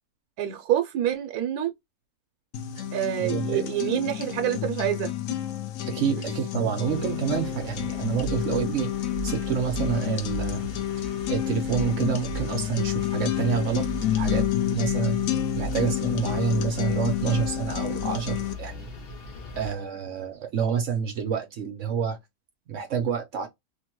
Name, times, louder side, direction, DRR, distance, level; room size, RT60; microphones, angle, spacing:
voice 1, 0.4-1.7 2.9-5.1 6.2-6.4, right 11 dB, 85° right, 1.1 m, -27 dB
sound 1, 2.5-18.5, left 11 dB, 70° left, 0.9 m, -29 dB
voice 2, 3.2-3.6 5.9-8.9 9.2-10.7 11.3-13.9 14.1-14.5 14.7-15.2 15.5-18.9 19.6-22.2 22.7-23.5, right 7 dB, 60° right, 0.9 m, -28 dB
sound 2, 6.8-19.7, right 1 dB, 45° left, 0.9 m, -38 dB
3.2 x 2.2 x 2.9 m
omnidirectional pair, 1.6 m